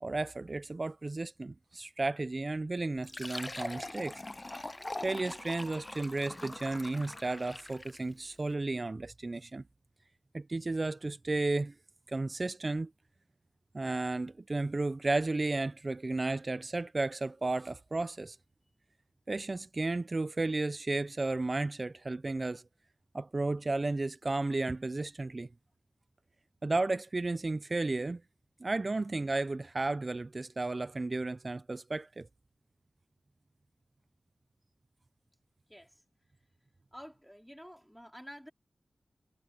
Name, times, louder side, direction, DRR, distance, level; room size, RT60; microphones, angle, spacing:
voice 1, 0.0-4.2 5.0-9.6 10.3-11.7 12.1-12.9 13.7-18.4 19.3-22.6 23.1-25.5 26.6-28.2 28.6-32.3, right 2 dB, 50° right, 0.5 m, -33 dB
Fill (with liquid), 3.0-8.1, left 2 dB, 35° left, 0.4 m, -42 dB
voice 2, 35.7-36.0 36.9-38.5, equal, ahead, 4.0 m, -49 dB
cardioid pair, 40°, 0 cm